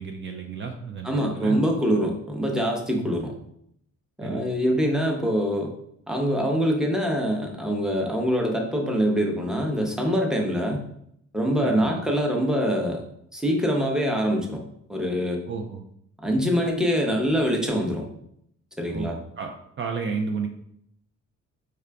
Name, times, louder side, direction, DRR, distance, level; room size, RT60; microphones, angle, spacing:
voice 1, 0.0-1.6 3.0-3.2 4.2-4.4 11.6-12.0 15.5-15.8 18.9-20.5, right 5 dB, 40° right, 3 dB, 0.5 m, -32 dB
voice 2, 1.0-3.3 4.2-5.7 6.1-10.9 11.3-13.0 13.3-14.6 14.9-15.4 16.2-18.1 18.8-19.2, equal, ahead, 1 dB, 0.8 m, -24 dB
4.7 x 2.4 x 3.4 m, 0.71 s
cardioid pair, 90°, 30 cm